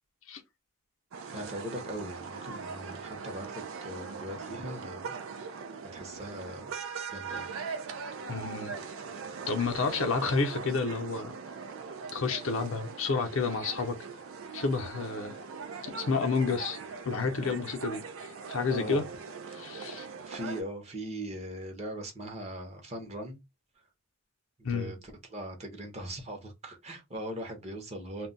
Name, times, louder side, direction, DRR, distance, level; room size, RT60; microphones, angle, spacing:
sound 1, 1.1-20.6, right 5 dB, 70° right, 0.4 m, -41 dB
voice 1, 1.3-5.6 5.9-6.8 7.1-7.5 18.7-19.1 20.3-23.4 24.6-25.0 25.3-28.3, equal, 30° right, 0.7 m, -40 dB
voice 2, 8.3-8.7 9.5-11.3 12.1-14.1 14.5-15.4 15.9-16.8 17.0-18.0 18.5-19.0 19.5-20.1 24.6-24.9, left 4 dB, 65° left, 0.6 m, -30 dB
2.2 x 2.1 x 3.8 m
head